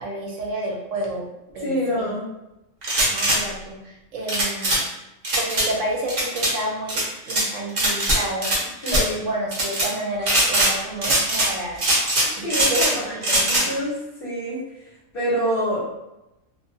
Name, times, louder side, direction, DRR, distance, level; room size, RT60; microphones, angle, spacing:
voice 1, 0.0-2.1 3.1-4.8 5.4-11.8 12.3-13.7, right 1 dB, 75° right, -1 dB, 0.9 m, -30 dB
voice 2, 1.6-2.3 8.8-9.2 12.1-13.1 13.4-14.6 15.1-15.8, equal, 50° left, -7 dB, 0.9 m, -26 dB
sound 1, 2.8-3.4 4.3-4.8 5.2-5.7 6.1-6.5 6.9-7.4 7.8-8.6 8.8-9.0 9.5-9.9 10.2-10.7 11.0-11.5 11.8-12.9 13.2-13.6, right 1 dB, 40° right, 0.7 m, -21 dB
2.4 x 2.2 x 2.6 m, 0.94 s
omnidirectional pair, 1.3 m